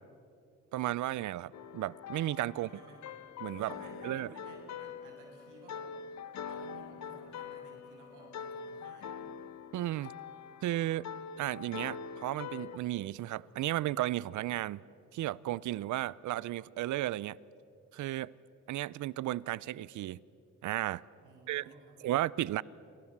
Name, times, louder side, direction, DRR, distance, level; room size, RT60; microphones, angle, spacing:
voice 1, 0.7-2.7 3.4-3.7 4.0-4.3 9.7-10.1 10.6-11.1 11.4-14.8 15.1-17.4 17.9-18.3 18.7-20.2 20.6-21.0 21.5-21.6 22.0-22.6, right 15 dB, 75° right, 0.6 m, -34 dB
sound 1, 1.5-12.8, left 7 dB, 65° left, 1.2 m, -44 dB
voice 2, 2.5-3.1 3.6-6.0 6.2-9.4 21.2-22.2, right 3 dB, 90° right, 7.8 m, -55 dB
29.5 x 25.0 x 7.4 m
cardioid pair, 90°, 30 cm